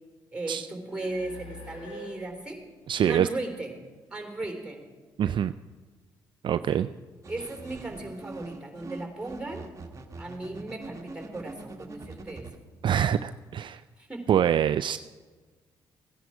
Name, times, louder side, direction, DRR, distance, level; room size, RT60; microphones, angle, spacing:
voice 1, 0.3-2.6 3.1-3.8 4.1-4.9 6.7-6.9 7.3-9.7 10.2-12.5 14.0-14.4, right 2 dB, 10° right, 3 dB, 3.4 m, -36 dB
sound 1, 0.9-4.1, left 1 dB, 65° left, 2.5 m, -47 dB
voice 2, 2.9-3.3 5.2-5.5 6.4-6.9 12.8-13.8 14.3-15.0, right 9 dB, 55° right, 12 dB, 0.4 m, -24 dB
sound 2, 7.2-12.6, right 2 dB, 30° right, 1.4 m, -43 dB
15.5 x 10.0 x 4.9 m, 1.4 s
hypercardioid pair, 50°, 10 cm